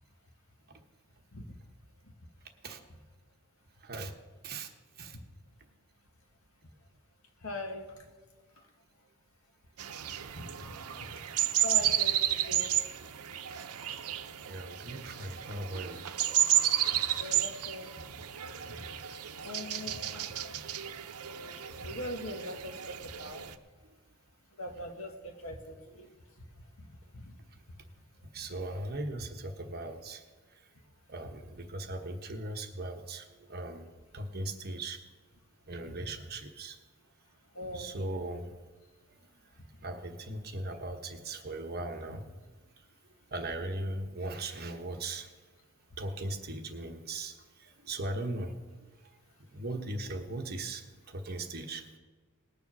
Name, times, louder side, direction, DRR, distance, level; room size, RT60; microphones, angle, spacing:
voice 1, 3.8-4.2 4.4-4.7 5.0-5.2 10.8-11.0 13.9-14.0 14.4-16.1 21.3-21.6 25.8-25.9 28.3-30.2 30.6-30.7 31.1-33.9 34.1-35.0 35.7-36.8 37.7-38.5 39.1-39.2 39.8-42.3 43.3-45.3 46.0-48.9 49.5-51.8, right 2 dB, 45° right, 4 dB, 1.2 m, -39 dB
voice 2, 7.4-7.8 10.3-10.4 11.6-12.7 17.2-17.9 19.4-20.2 21.8-23.4 24.6-26.1 27.1-27.2 35.9-36.0 37.5-37.9, left 1 dB, 70° left, 4 dB, 1.6 m, -40 dB
sound 1, 9.8-23.5, right 11 dB, 90° right, 0.7 m, -32 dB
19.5 x 7.0 x 6.1 m, 1.4 s
head